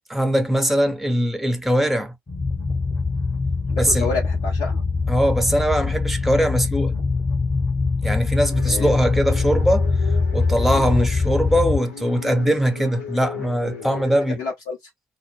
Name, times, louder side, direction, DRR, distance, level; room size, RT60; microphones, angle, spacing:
voice 1, 0.1-2.1 3.8-4.1 5.1-6.9 8.0-9.9 10.3-14.4, equal, ahead, 0.7 m, -21 dB
sound 1, 2.3-11.8, left 4 dB, 30° left, 1.0 m, -23 dB
voice 2, 3.7-4.8 8.7-8.9 10.7-11.1 14.0-14.8, left 4 dB, 60° left, 0.7 m, -30 dB
sound 2, 8.5-14.0, left 6 dB, 85° left, 1.0 m, -37 dB
2.2 x 2.0 x 3.1 m
hypercardioid pair, 55°, 8 cm